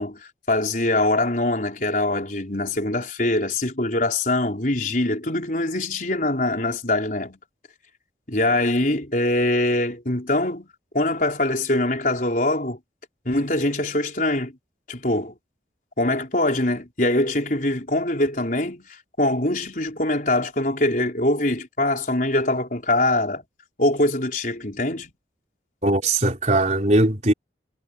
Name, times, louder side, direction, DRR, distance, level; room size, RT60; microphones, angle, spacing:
voice 1, 0.0-7.4 8.3-10.7 10.9-12.8 13.2-14.5 14.9-15.4 16.0-23.4 23.8-25.1, left 1 dB, 45° left, 5.0 m, -23 dB
voice 2, 25.8-27.3, right 2 dB, 40° right, 4.1 m, -20 dB
head